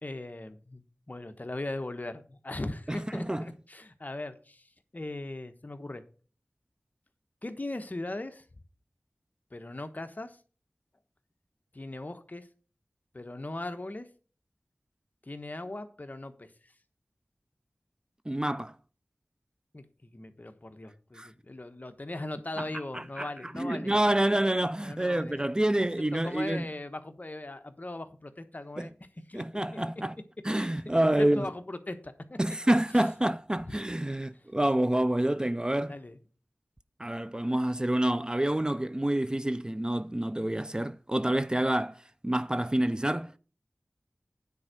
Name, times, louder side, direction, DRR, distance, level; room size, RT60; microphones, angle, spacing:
voice 1, 0.0-6.0 7.4-8.4 9.5-10.4 11.7-12.5 13.1-14.1 15.2-16.5 19.7-24.0 24.8-28.9 29.3-29.8 30.6-32.4 33.7-33.8 34.3-34.4 35.9-36.2, left 2 dB, 40° left, 1.1 m, -39 dB
voice 2, 2.9-3.4 18.3-18.7 21.2-21.3 22.9-26.7 28.8-28.9 29.3-30.1 30.4-31.5 32.4-35.9 37.0-43.4, right 1 dB, 20° right, 0.4 m, -28 dB
9.5 x 4.5 x 6.4 m
wide cardioid pair, 55°, 4 cm